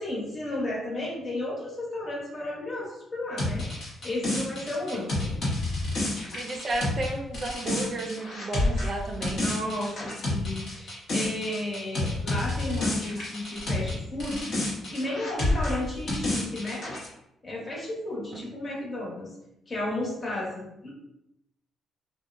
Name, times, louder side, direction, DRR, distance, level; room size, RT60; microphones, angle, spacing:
voice 1, 0.0-3.6 4.0-5.3 9.3-14.5 14.9-16.8 17.4-19.3 19.7-20.9, left 1 dB, 35° left, -4 dB, 1.0 m, -33 dB
sound 1, 3.4-14.0 14.2-17.1, left 1 dB, 60° left, 0.9 m, -29 dB
voice 2, 6.3-9.5, right 2 dB, 40° right, 1 dB, 0.4 m, -32 dB
2.7 x 2.1 x 2.4 m, 0.83 s
cardioid pair, 90°, 0 cm